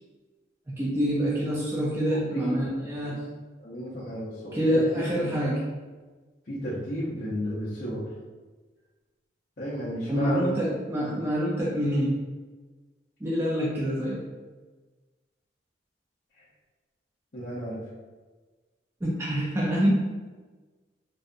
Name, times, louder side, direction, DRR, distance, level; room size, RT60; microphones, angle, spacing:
voice 1, 0.8-3.2 4.5-5.6 10.1-12.2 13.2-14.2 19.0-20.0, equal, 15° right, -6 dB, 0.3 m, -26 dB
voice 2, 2.1-3.2 3.6-5.4 6.4-8.1 9.6-10.6 11.0-11.2 16.3-16.5 17.3-17.9, equal, 45° left, -10 dB, 0.5 m, -33 dB
2.7 x 2.1 x 2.4 m, 1.3 s
head